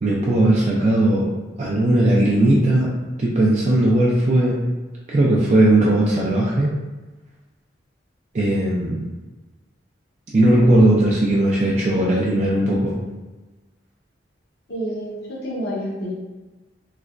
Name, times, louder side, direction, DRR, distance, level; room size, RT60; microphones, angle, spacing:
voice 1, 0.0-1.3 1.6-2.9 3.2-4.6 5.1-6.7 8.3-9.1 10.3-13.0, right 1 dB, 40° right, -4 dB, 0.4 m, -18 dB
voice 2, 14.7-16.1, equal, 60° left, -6 dB, 0.8 m, -28 dB
3.2 x 2.9 x 2.5 m, 1.2 s
head